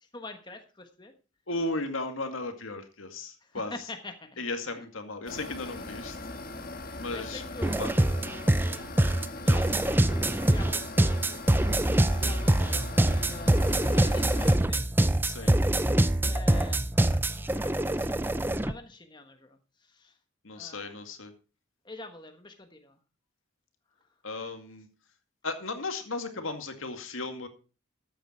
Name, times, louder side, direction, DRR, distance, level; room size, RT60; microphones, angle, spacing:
voice 1, 0.0-1.1 3.4-4.4 4.7-4.8 7.1-7.9 9.4-13.6 13.9-15.6 16.2-20.1 20.5-21.0 21.8-22.9, left 2 dB, 20° left, 6 dB, 1.3 m, -46 dB
voice 2, 1.5-3.7 4.4-6.2 7.0-7.4 7.8-7.9 9.5-9.6 15.2-15.5 20.4-21.3 24.2-24.9 25.4-27.5, left 2 dB, 80° left, 7 dB, 2.1 m, -35 dB
sound 1, 5.3-14.6, left 2 dB, 45° left, 1.5 m, -40 dB
sound 2, 7.6-18.7, right 1 dB, 10° right, 0.5 m, -24 dB
13.5 x 9.0 x 4.4 m, 0.33 s
head